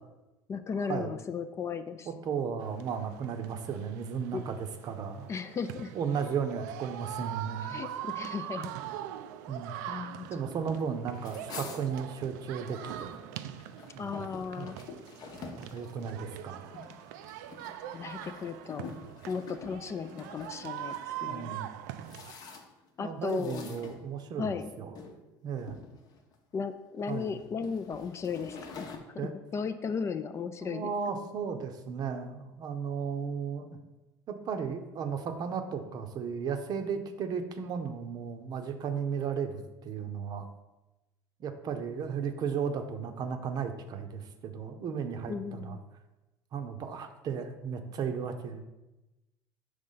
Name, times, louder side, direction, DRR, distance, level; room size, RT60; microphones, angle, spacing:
voice 1, 0.5-2.1 4.3-4.4 5.3-5.9 7.7-8.7 9.9-10.4 10.7-10.8 14.0-14.8 17.9-18.9 19.3-20.9 21.2-21.6 23.0-23.7 24.4-24.7 26.5-30.9 45.3-45.8, left 5 dB, 30° left, 10 dB, 0.4 m, -36 dB
voice 2, 2.1-5.3 5.9-7.8 9.5-9.7 10.3-13.2 13.9-14.3 14.6-14.7 15.6-16.7 21.2-21.7 23.0-25.0 25.4-25.8 27.1-27.3 29.2-29.3 30.6-33.8 34.3-40.5 41.4-45.8 46.5-48.6, right 6 dB, 50° right, 7 dB, 0.7 m, -35 dB
sound 1, 2.6-22.3, right 12 dB, 80° right, 0.3 m, -42 dB
sound 2, 11.1-13.1 13.4-21.0 21.7-22.9 23.2-24.5 24.9-25.2 25.6-26.3 27.0-29.0, left 4 dB, 45° left, 0.8 m, -47 dB
5.1 x 3.3 x 5.5 m, 1.0 s
supercardioid pair, 95°, 9 cm